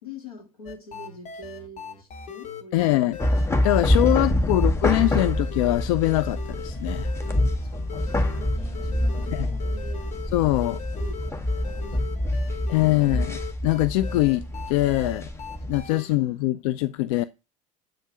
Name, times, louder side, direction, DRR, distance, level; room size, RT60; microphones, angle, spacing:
voice 1, 0.0-3.2 7.2-10.2 11.0-11.2 11.6-13.4 16.0-16.3, left 2 dB, 80° left, 2.4 m, -45 dB
sound 1, 0.7-16.1, left 7 dB, 40° left, 1.5 m, -40 dB
voice 2, 2.7-3.2 3.6-7.1 9.3-9.5 10.3-10.8 12.7-15.3 15.7-17.2, left 17 dB, 60° left, 0.4 m, -23 dB
sound 2, 3.2-15.8, left 1 dB, 15° left, 1.4 m, -26 dB
7.7 x 5.4 x 5.9 m
figure-of-eight pair, 70°, 19 cm